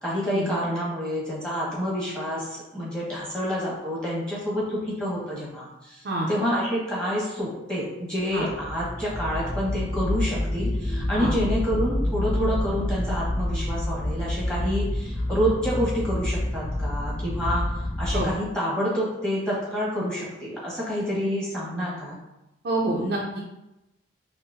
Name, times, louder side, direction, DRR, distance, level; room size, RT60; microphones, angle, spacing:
voice 1, 0.0-17.6 18.0-22.2, equal, 5° left, -8 dB, 1.1 m, -28 dB
sound 1, 8.4-18.3, left 1 dB, 20° left, 0.5 m, -28 dB
voice 2, 22.6-23.4, right 2 dB, 55° right, -3 dB, 0.5 m, -27 dB
5.4 x 2.0 x 2.6 m, 0.95 s
head